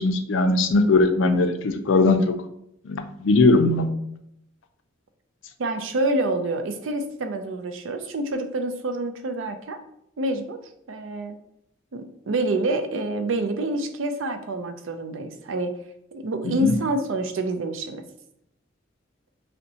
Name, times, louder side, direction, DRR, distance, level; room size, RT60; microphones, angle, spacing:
voice 1, 0.0-2.3 2.8-3.9 16.4-16.7, left 2 dB, 65° left, 7 dB, 0.4 m, -20 dB
voice 2, 5.6-9.8 10.2-10.6 10.9-11.4 11.9-15.8 16.1-18.0, right 2 dB, 70° right, 8 dB, 0.5 m, -27 dB
5.2 x 2.1 x 2.8 m, 0.76 s
head